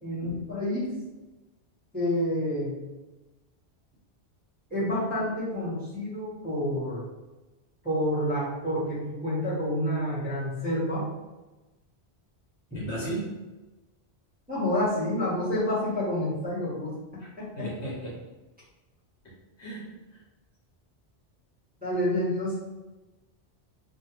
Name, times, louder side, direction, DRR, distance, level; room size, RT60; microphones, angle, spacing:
voice 1, 0.0-1.0 1.9-2.7 4.7-7.0 7.8-11.0 12.7-12.8 14.5-17.0 17.4-17.7 21.8-22.6, left 1 dB, 10° right, -11 dB, 1.0 m, -28 dB
voice 2, 12.7-13.3 17.2-17.3 17.6-18.2 19.6-20.2, right 2 dB, 80° left, -6 dB, 1.3 m, -35 dB
2.6 x 2.4 x 2.9 m, 1.1 s
omnidirectional pair, 1.1 m